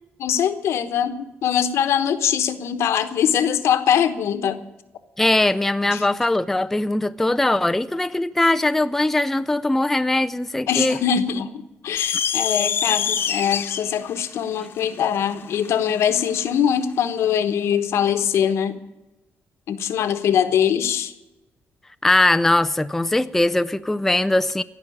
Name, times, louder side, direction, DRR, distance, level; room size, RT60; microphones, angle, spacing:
voice 1, 0.2-4.6 5.9-6.1 10.7-18.7 19.7-21.1, left 8 dB, 75° left, 1.1 m, -22 dB
voice 2, 5.2-11.0 22.0-24.6, left 2 dB, 5° left, 0.4 m, -20 dB
sound 1, 12.0-16.5, left 8 dB, 55° left, 1.0 m, -26 dB
16.0 x 6.0 x 9.9 m
cardioid pair, 115°, 5 cm